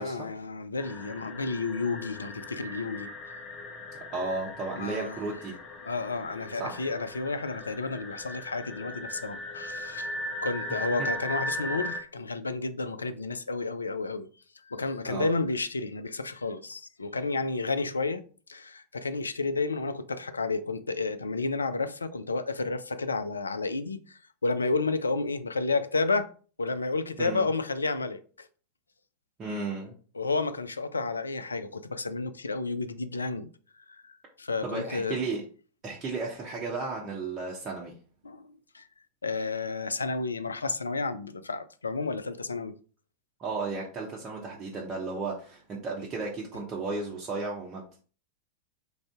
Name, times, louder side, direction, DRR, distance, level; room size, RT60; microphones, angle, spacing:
voice 1, 0.0-3.4 4.7-5.2 5.9-10.2 10.4-14.3 14.7-18.2 18.5-26.3 26.6-28.5 30.1-33.5 33.9-35.2 38.2-38.8 39.2-42.8, left 3 dB, 75° left, 0.3 m, -31 dB
sound 1, 0.8-12.0, left 1 dB, 30° left, 0.6 m, -38 dB
voice 2, 4.1-5.5 6.6-6.7 10.7-10.9 15.0-15.3 27.2-27.5 29.4-29.9 34.6-35.4 35.8-37.9 43.4-48.0, right 3 dB, 25° right, 0.8 m, -34 dB
3.4 x 2.6 x 3.5 m
figure-of-eight pair, 90°, 0 cm